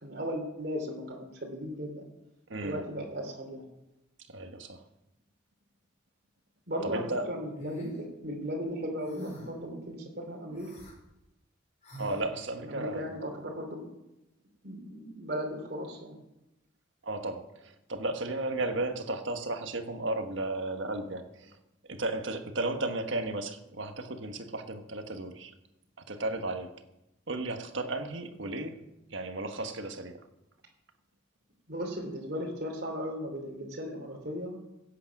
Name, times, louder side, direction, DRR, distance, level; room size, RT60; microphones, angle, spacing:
voice 1, 0.0-2.0 2.6-3.7 6.7-10.7 12.7-13.8 14.6-16.2 31.7-34.6, equal, 55° right, -1 dB, 3.1 m, -36 dB
voice 2, 2.5-2.8 4.3-4.8 6.8-7.3 12.0-13.0 17.0-21.6 21.9-25.5 26.1-26.7 27.3-30.3, right 2 dB, 75° right, 6 dB, 1.4 m, -34 dB
sound 1, 7.6-8.0 9.0-9.6 10.5-10.9 11.8-12.2, right 1 dB, 35° left, 4.7 m, -43 dB
16.5 x 8.5 x 6.0 m, 0.91 s
head